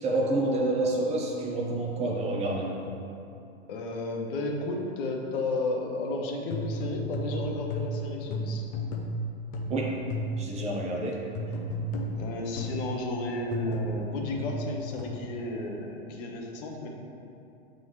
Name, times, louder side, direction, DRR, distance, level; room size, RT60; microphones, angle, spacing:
voice 1, 0.0-2.8 9.7-10.0 10.3-11.2, right 2 dB, 20° right, -1 dB, 0.6 m, -28 dB
voice 2, 3.7-8.6 12.2-16.9, left 2 dB, 55° left, 0 dB, 1.1 m, -33 dB
sound 1, 6.5-10.6 11.3-12.9 13.5-15.0, equal, 25° left, 0.5 m, -33 dB
8.6 x 4.0 x 3.2 m, 2.7 s
hypercardioid pair, 125°, 34 cm